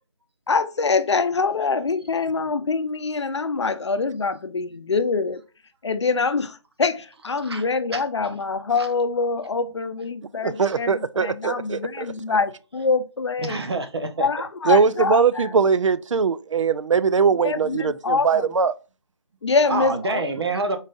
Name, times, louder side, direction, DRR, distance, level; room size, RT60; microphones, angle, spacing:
voice 1, 0.5-5.4 5.8-13.6 14.2-15.5 17.3-18.5 19.4-20.4, left 4 dB, 65° left, 0.6 m, -25 dB
voice 2, 10.4-12.1 14.7-18.7, right 5 dB, 75° right, 0.4 m, -21 dB
voice 3, 13.4-14.3 14.6-14.7 19.7-20.8, right 3 dB, 55° right, 0.8 m, -26 dB
3.9 x 3.6 x 2.5 m
figure-of-eight pair, 165°, 16 cm